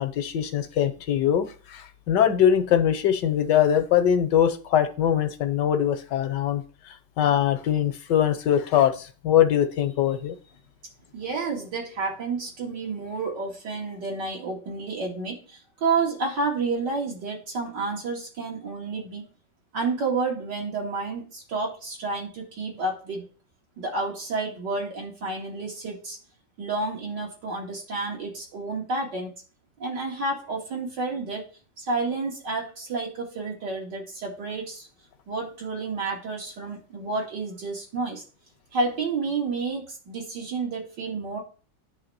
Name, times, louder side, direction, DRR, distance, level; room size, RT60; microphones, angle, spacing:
voice 1, 0.0-6.6 6.9-10.4, left 9 dB, 80° left, 9 dB, 1.6 m, -22 dB
voice 2, 11.1-19.2 19.7-23.3 23.8-26.2 26.6-29.3 29.8-31.4 31.8-34.9 35.3-38.2 38.7-41.4, right 3 dB, 75° right, -1 dB, 3.0 m, -30 dB
9.5 x 3.4 x 6.8 m, 0.37 s
omnidirectional pair, 1.9 m